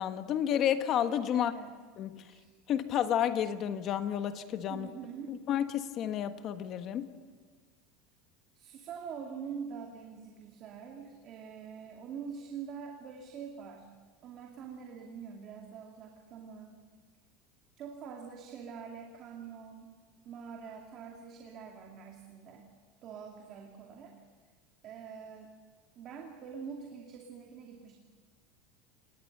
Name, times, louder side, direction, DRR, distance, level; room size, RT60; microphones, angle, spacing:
voice 1, 0.0-1.5 2.0-2.2 2.7-4.9 5.3-7.1, left 10 dB, 35° left, 9 dB, 1.4 m, -31 dB
voice 2, 1.3-1.7 2.3-2.5 4.7-5.4 8.5-13.9 14.2-16.8 17.8-19.9 20.3-22.7 23.0-24.1 24.8-25.5 26.0-28.0, right 6 dB, 35° right, 1 dB, 2.5 m, -45 dB
28.0 x 20.0 x 6.7 m, 1.5 s
supercardioid pair, 160°, 0 cm